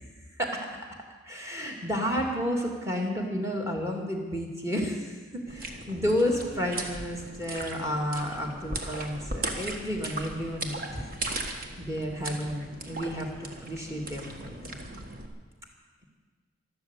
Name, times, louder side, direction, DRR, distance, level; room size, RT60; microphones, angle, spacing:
voice 1, 1.2-5.1 5.5-14.5, equal, 15° right, 1 dB, 2.4 m, -31 dB
sound 1, 5.5-15.3, right 2 dB, 45° right, 1.5 m, -38 dB
13.0 x 12.5 x 8.3 m, 1.4 s
head